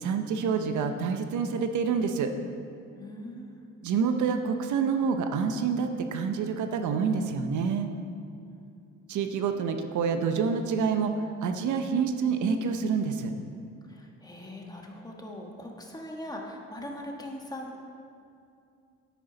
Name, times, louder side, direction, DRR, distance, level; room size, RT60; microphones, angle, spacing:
voice 1, 0.0-2.3 3.8-7.9 9.1-11.1 11.4-13.3, right 6 dB, 75° right, 7 dB, 0.8 m, -27 dB
voice 2, 3.0-3.6 13.9-17.8, left 1 dB, 15° left, 0 dB, 1.4 m, -41 dB
9.5 x 8.9 x 3.9 m, 2.5 s
cardioid pair, 90°, 30 cm